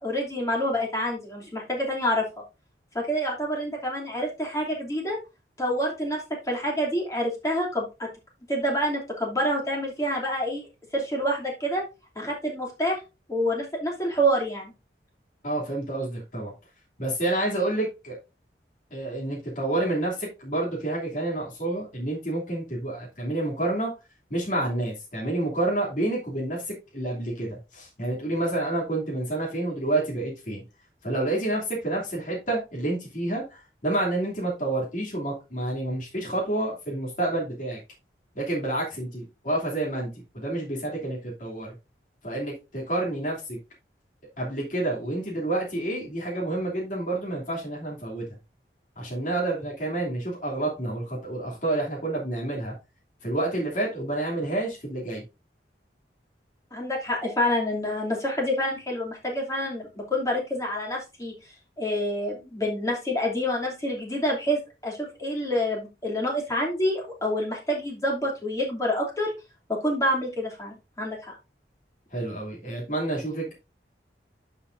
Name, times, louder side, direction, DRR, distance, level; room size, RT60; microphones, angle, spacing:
voice 1, 0.0-2.2 2.9-5.2 5.6-8.1 8.5-10.7 10.9-11.8 12.1-13.0 13.3-14.7 56.7-69.3 69.7-71.3, equal, 20° left, -2 dB, 2.9 m, -27 dB
voice 2, 15.4-16.5 17.0-18.2 18.9-23.9 24.3-30.6 31.0-37.8 38.3-41.7 42.2-43.6 44.4-48.2 49.0-52.7 53.2-55.2 72.1-73.5, right 2 dB, 45° left, -4 dB, 2.9 m, -29 dB
11.5 x 5.6 x 2.6 m, 0.28 s
head